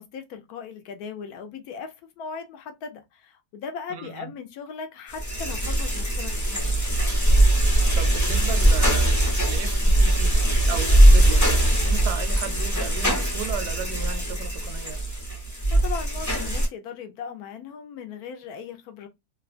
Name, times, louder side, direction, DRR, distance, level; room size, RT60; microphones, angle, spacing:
voice 1, 0.0-6.8 15.7-19.1, left 6 dB, 75° left, 1.0 m, -38 dB
voice 2, 3.9-4.3 7.9-10.4 10.7-15.0, right 7 dB, 80° right, 1.1 m, -35 dB
sound 1, 5.1-16.7, right 1 dB, 20° left, 0.4 m, -20 dB
2.9 x 2.2 x 2.4 m
omnidirectional pair, 1.7 m